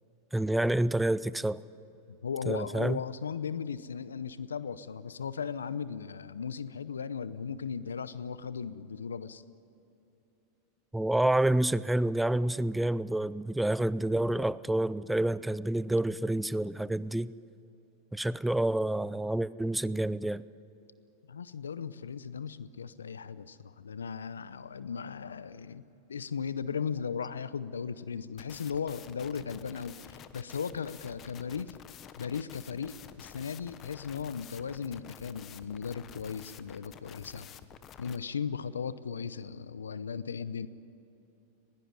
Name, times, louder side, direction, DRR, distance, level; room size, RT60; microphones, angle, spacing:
voice 1, 0.3-1.6 2.5-3.0 10.9-17.3 18.1-20.4, right 1 dB, 5° right, 0.5 m, -28 dB
voice 2, 2.1-9.4 21.3-25.8 26.1-31.8 32.2-37.5 38.0-40.7, left 6 dB, 85° left, 0.7 m, -37 dB
sound 1, 28.4-38.2, left 9 dB, 35° left, 1.1 m, -50 dB
20.5 x 18.0 x 9.6 m
hypercardioid pair, 100°, 0 cm